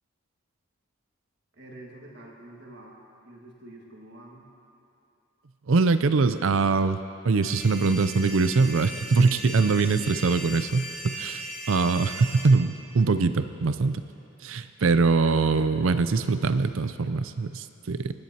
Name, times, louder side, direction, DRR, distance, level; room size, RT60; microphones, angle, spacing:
voice 1, 1.5-3.0 3.2-4.5, right 1 dB, 55° right, -2 dB, 1.8 m, -47 dB
voice 2, 5.7-14.0 14.4-18.1, right 4 dB, 70° right, 11 dB, 0.5 m, -23 dB
sound 1, 7.4-12.4, right 1 dB, 5° left, 1.4 m, -38 dB
24.5 x 10.5 x 2.9 m, 2.9 s
head